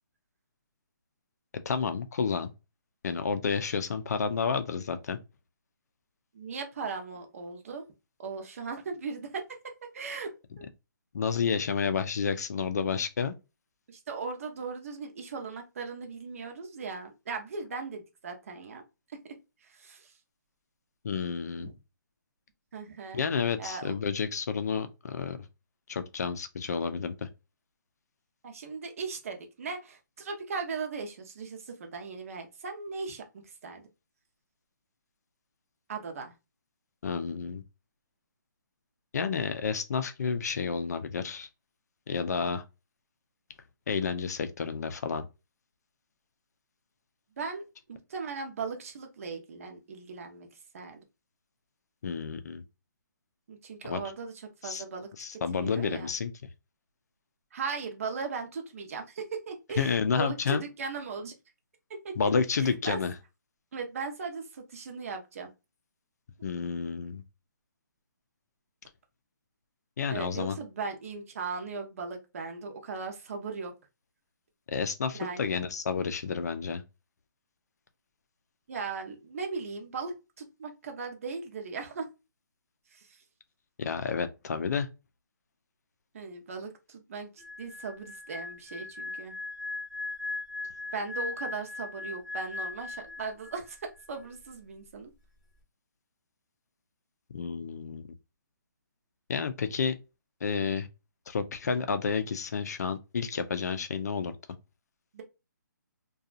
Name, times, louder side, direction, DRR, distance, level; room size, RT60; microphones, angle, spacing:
voice 1, 1.7-2.5 3.0-5.2 11.1-13.3 21.0-21.7 23.1-25.4 25.9-27.3 37.0-37.6 39.1-41.5 42.1-42.6 43.9-45.3 52.0-52.6 53.8-54.0 54.6-54.8 55.2-56.3 59.8-60.6 62.2-63.1 66.4-67.2 70.0-70.6 74.7-76.8 83.8-84.9 97.3-98.1 99.3-99.9 100.4-100.9 101.3-104.3, left 5 dB, 55° left, 0.5 m, -30 dB
voice 2, 6.3-7.8 8.2-9.4 9.8-10.7 13.9-18.8 19.6-20.1 21.6-21.7 22.7-23.3 23.6-24.0 28.4-33.8 35.9-36.3 47.4-47.6 47.9-50.5 50.7-51.0 53.5-56.1 57.5-61.3 62.0-62.3 62.6-63.0 63.7-65.5 70.1-73.7 75.1-75.6 78.7-82.1 82.9-83.2 86.1-89.4 90.9-95.1 105.1-105.2, right 4 dB, 45° right, 0.7 m, -38 dB
sound 1, 87.4-93.8 94.0-94.3, left 3 dB, ahead, 0.9 m, -38 dB
2.7 x 2.3 x 2.4 m
hypercardioid pair, 165°, 11 cm